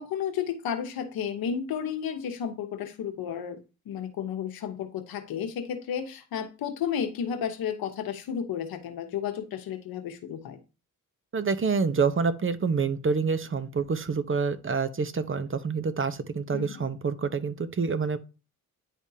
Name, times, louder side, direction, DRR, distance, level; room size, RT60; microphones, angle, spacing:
voice 1, 0.0-3.6 3.9-10.6 16.5-16.9, left 8 dB, 90° left, 1.0 m, -32 dB
voice 2, 11.3-18.2, right 5 dB, 35° right, 0.8 m, -27 dB
10.0 x 3.6 x 2.8 m
cardioid pair, 65°, 35 cm